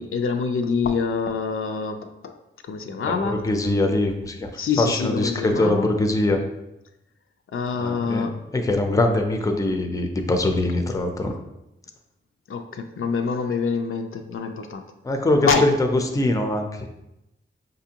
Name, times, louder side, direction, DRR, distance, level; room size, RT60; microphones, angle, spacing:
voice 1, 0.0-2.4 2.6-3.4 4.6-5.9 7.5-8.4 12.5-14.8 15.4-15.6, left 5 dB, 80° left, 6 dB, 0.4 m, -26 dB
voice 2, 3.1-4.5 4.8-6.4 7.8-8.3 8.5-11.3 15.0-15.9 16.1-16.9, left 2 dB, 15° left, 4 dB, 0.4 m, -22 dB
5.1 x 2.5 x 2.8 m, 0.90 s
wide cardioid pair, 90°, 21 cm